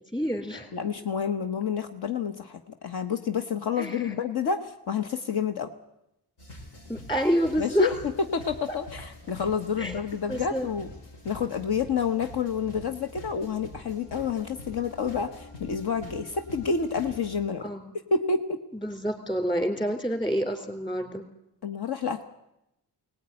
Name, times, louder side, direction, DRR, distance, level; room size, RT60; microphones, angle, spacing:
voice 1, 0.1-0.7 3.8-4.2 6.9-7.9 9.8-10.0 10.3-10.7 17.6-17.9 18.7-21.3, equal, 10° left, 6 dB, 3.5 m, -28 dB
voice 2, 0.7-5.7 7.6-7.9 8.3-10.9 11.2-17.7 18.1-18.6 21.6-22.2, left 6 dB, 65° left, 8 dB, 1.4 m, -29 dB
sound 1, 6.4-17.4, left 1 dB, 80° left, 7.2 m, -45 dB
22.5 x 18.5 x 9.9 m, 0.87 s
wide cardioid pair, 145°, 42 cm